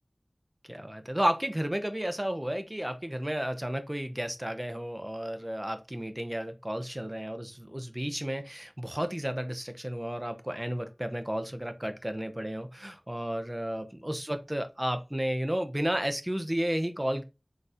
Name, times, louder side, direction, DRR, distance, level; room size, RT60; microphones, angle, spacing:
voice 1, 0.7-17.2, equal, 20° right, 0.5 m, -32 dB
3.8 x 2.4 x 2.6 m
wide cardioid pair, 45°, 0 cm